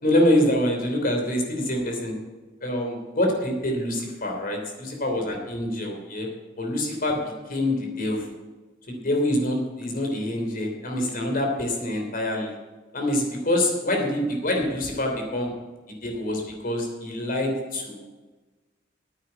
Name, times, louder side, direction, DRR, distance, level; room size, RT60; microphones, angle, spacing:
voice 1, 0.0-2.1 2.6-6.3 6.6-7.2 7.5-8.3 8.9-12.5 12.9-15.5 15.9-18.0, left 1 dB, 45° left, 1 dB, 3.2 m, -25 dB
9.8 x 8.6 x 9.9 m, 1.3 s
head